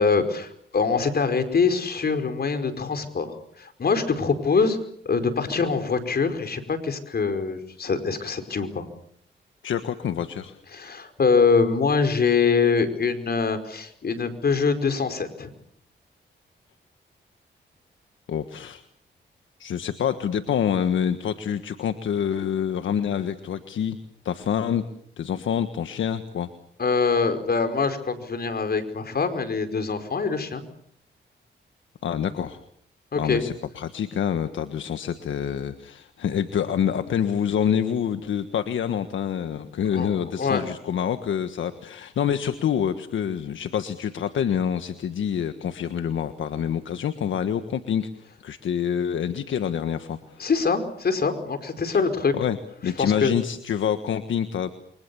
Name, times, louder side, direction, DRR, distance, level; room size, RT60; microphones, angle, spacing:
voice 1, 0.0-4.8 5.0-8.9 10.7-15.5 26.8-30.6 33.1-33.4 39.9-40.1 40.4-40.6 50.4-52.3 53.0-53.3, left 5 dB, 55° left, 8 dB, 5.1 m, -24 dB
voice 2, 9.6-10.6 18.3-18.8 19.6-24.0 24.2-24.8 25.2-26.5 32.0-32.6 33.2-50.4 52.3-52.6 52.8-54.7, left 8 dB, 85° left, 9 dB, 1.5 m, -27 dB
28.5 x 24.5 x 7.1 m, 0.66 s
cardioid pair, 70°, 19 cm